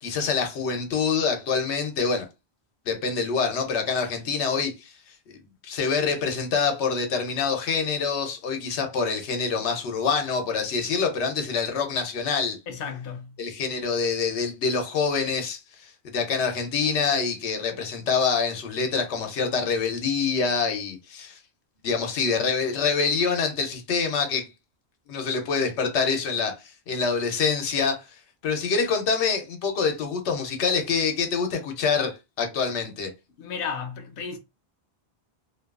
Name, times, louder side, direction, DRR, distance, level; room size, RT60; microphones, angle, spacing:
voice 1, 0.0-2.3 2.9-4.9 5.3-12.6 13.4-21.4 21.8-24.5 25.1-28.0 28.4-33.1, left 5 dB, 90° left, 1.0 m, -26 dB
voice 2, 12.7-13.4 33.4-34.4, left 6 dB, 60° left, 0.8 m, -33 dB
2.7 x 2.3 x 2.3 m
omnidirectional pair, 1.1 m